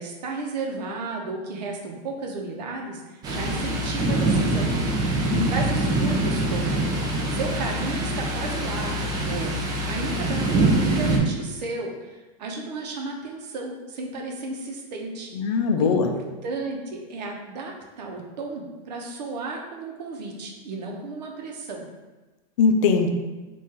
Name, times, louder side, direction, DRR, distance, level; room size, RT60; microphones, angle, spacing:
voice 1, 0.0-4.7 5.5-6.8 7.3-9.6 9.8-21.8, right 3 dB, 85° right, 1 dB, 0.9 m, -33 dB
Thunder, 3.2-11.2, right 1 dB, 20° right, 0.5 m, -24 dB
voice 2, 5.1-5.5 15.3-16.2 22.6-23.1, left 5 dB, 55° left, 5 dB, 0.5 m, -21 dB
3.6 x 2.6 x 4.2 m, 1.2 s
supercardioid pair, 160°, 21 cm